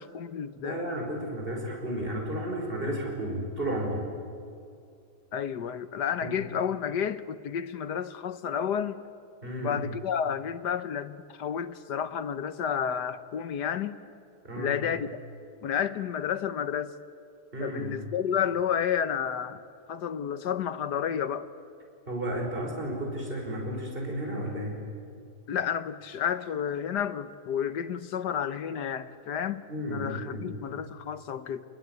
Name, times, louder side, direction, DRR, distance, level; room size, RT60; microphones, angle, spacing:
voice 1, 0.0-0.8 5.3-9.0 9.6-14.0 14.6-15.2 15.6-16.9 17.6-19.6 19.9-21.5 25.5-29.6 29.9-31.6, left 8 dB, 80° left, 1.6 m, -31 dB
voice 2, 0.6-4.1 6.2-6.4 9.4-9.8 14.4-14.8 17.5-18.0 22.1-24.8 29.7-30.6, right 1 dB, 30° right, 5.2 m, -33 dB
29.5 x 21.0 x 9.4 m
omnidirectional pair, 1.8 m